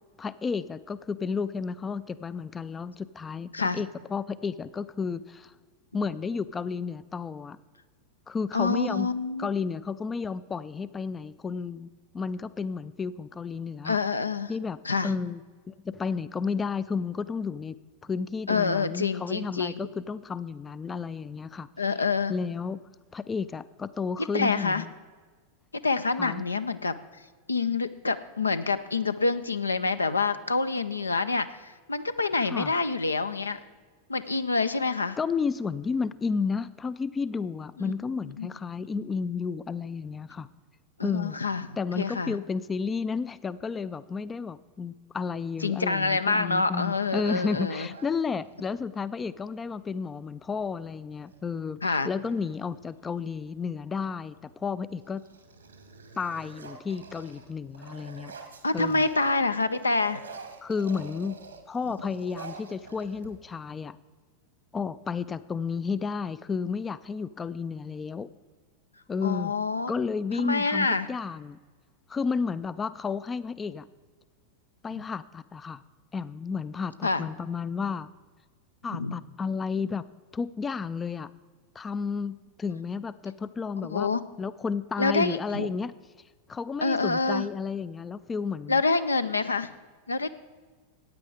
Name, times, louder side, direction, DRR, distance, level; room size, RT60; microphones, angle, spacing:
voice 1, 0.2-5.5 5.9-7.6 8.3-9.1 9.4-11.9 12.1-14.0 14.5-15.4 15.7-17.7 18.0-21.7 22.3-22.8 23.1-24.9 26.2-26.4 32.5-32.7 35.2-40.5 41.0-41.4 41.8-55.2 56.2-58.3 58.7-59.1 60.6-61.4 61.7-64.0 64.7-68.3 69.1-69.5 69.9-71.6 72.1-73.9 74.8-75.8 76.1-78.1 78.8-80.0 80.3-81.3 81.8-85.9 86.5-88.8, left 5 dB, 15° left, 16 dB, 0.4 m, -32 dB
voice 2, 8.5-9.5 13.8-14.5 14.8-15.1 18.5-19.7 21.8-22.3 24.3-24.8 25.8-27.0 27.5-33.6 34.1-35.2 37.8-38.0 38.4-38.5 41.0-41.7 42.0-42.4 45.6-47.9 51.8-52.1 58.6-60.2 69.2-69.9 70.4-71.1 77.0-77.3 78.9-79.2 83.9-84.2 85.0-85.7 86.8-87.5 88.7-89.7 90.1-90.3, left 4 dB, 80° left, 11 dB, 0.5 m, -27 dB
sound 1, 47.9-48.8 50.5-50.6 50.9-51.4 52.0-53.5 54.1-54.5 54.9-59.4 59.7-63.6, right 4 dB, 75° right, 1.6 m, -47 dB
14.5 x 9.3 x 4.8 m, 1.4 s
figure-of-eight pair, 90°, 0 cm